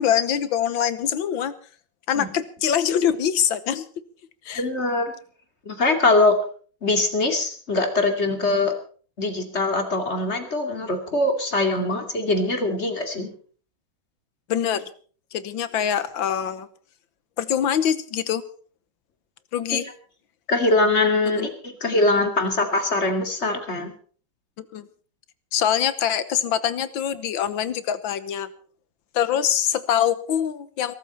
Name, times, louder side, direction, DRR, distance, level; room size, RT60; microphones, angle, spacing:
voice 1, 0.0-1.5 2.1-3.9 4.5-4.6 14.5-14.9 15.3-16.7 17.4-18.4 19.5-19.8 21.3-21.5 24.7-24.9 25.5-28.5 29.1-31.0, left 9 dB, 80° left, 14 dB, 1.8 m, -24 dB
voice 2, 4.6-5.1 5.7-6.4 6.8-8.7 9.2-13.3 19.7-19.8 20.5-23.9, left 2 dB, 35° left, 5 dB, 2.7 m, -22 dB
22.0 x 13.0 x 4.3 m, 0.43 s
omnidirectional pair, 2.1 m